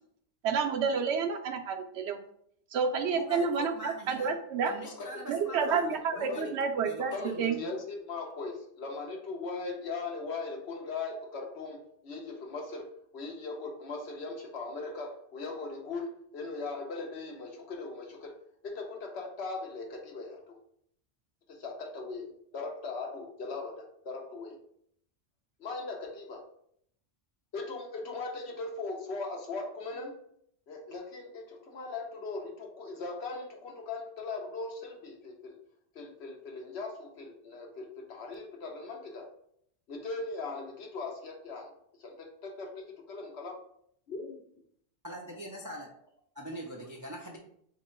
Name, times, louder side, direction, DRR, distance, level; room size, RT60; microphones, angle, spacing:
voice 1, 0.4-2.2 2.7-4.7 5.3-7.6, right 5 dB, 75° right, 5 dB, 0.8 m, -30 dB
voice 2, 3.1-4.3 4.6-6.5 6.8-7.8 45.0-45.9 46.4-47.4, equal, 30° right, 0 dB, 0.3 m, -42 dB
voice 3, 7.1-12.9 13.1-18.3 18.6-20.6 21.5-24.6 25.6-26.4 27.5-30.1 30.7-35.6 35.9-39.3 39.9-41.7 42.0-43.5 44.1-44.4, left 3 dB, 65° left, 1 dB, 1.1 m, -39 dB
3.7 x 2.9 x 4.3 m, 0.67 s
omnidirectional pair, 1.2 m